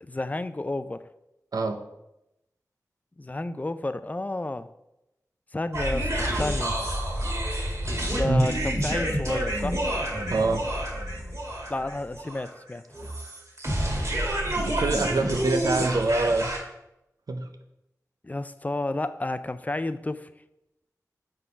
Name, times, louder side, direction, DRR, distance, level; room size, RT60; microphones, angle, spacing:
voice 1, 0.0-1.0 3.2-4.7 5.5-6.8 8.1-9.8 11.7-12.8 18.2-20.3, left 2 dB, 25° left, 12 dB, 0.4 m, -31 dB
sound 1, 5.7-16.6, right 1 dB, 50° right, 2.2 m, -28 dB
voice 2, 10.3-10.6 14.6-16.6 17.3-17.5, right 3 dB, 80° right, 6 dB, 0.6 m, -25 dB
6.0 x 3.8 x 5.6 m, 0.87 s
wide cardioid pair, 55°, 6 cm